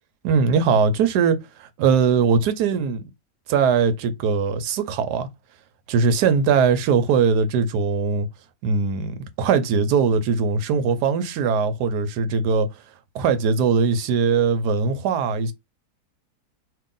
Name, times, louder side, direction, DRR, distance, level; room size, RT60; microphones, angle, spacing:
voice 1, 0.2-3.0 3.5-5.3 5.9-8.3 8.6-12.7 13.1-15.5, right 5 dB, 80° right, 1.2 m, -20 dB
2.8 x 2.6 x 3.7 m
omnidirectional pair, 1.7 m